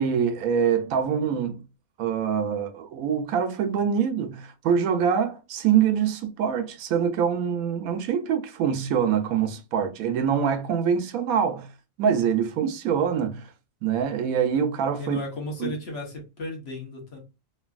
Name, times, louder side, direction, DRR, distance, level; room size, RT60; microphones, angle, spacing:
voice 1, 0.0-1.6 2.0-11.7 12.0-13.5 13.8-15.2 15.6-15.7, right 7 dB, 85° right, 1.0 m, -24 dB
voice 2, 15.0-17.2, left 2 dB, 55° left, 1.1 m, -35 dB
3.2 x 2.6 x 2.3 m
omnidirectional pair, 1.4 m